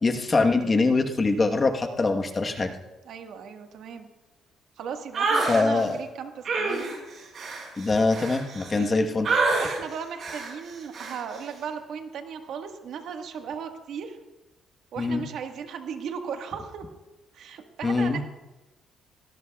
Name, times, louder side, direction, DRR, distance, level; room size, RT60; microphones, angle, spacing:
voice 1, 0.0-2.7 5.5-6.0 7.8-9.4 15.0-15.2 17.8-18.2, left 3 dB, 25° left, 4 dB, 1.2 m, -23 dB
voice 2, 3.1-4.1 4.8-6.8 8.7-8.9 9.6-14.2 14.9-16.8 17.3-18.2, right 7 dB, 70° right, 4 dB, 1.5 m, -36 dB
sound 1, 5.1-5.6 6.4-8.9 9.2-9.8 10.2-10.5 10.9-11.2, right 3 dB, 50° right, 5.4 m, -27 dB
18.5 x 17.5 x 2.3 m, 1.1 s
cardioid pair, 115°, 0 cm